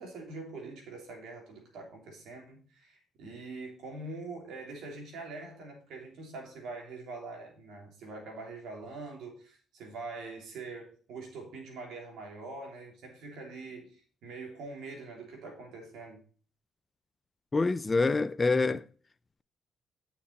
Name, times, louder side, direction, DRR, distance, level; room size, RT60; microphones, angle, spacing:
voice 1, 0.0-16.2, right 3 dB, 80° right, 3.0 m, -44 dB
voice 2, 17.5-18.8, left 3 dB, 25° left, 0.4 m, -26 dB
9.3 x 5.9 x 4.2 m
cardioid pair, 90°, 0 cm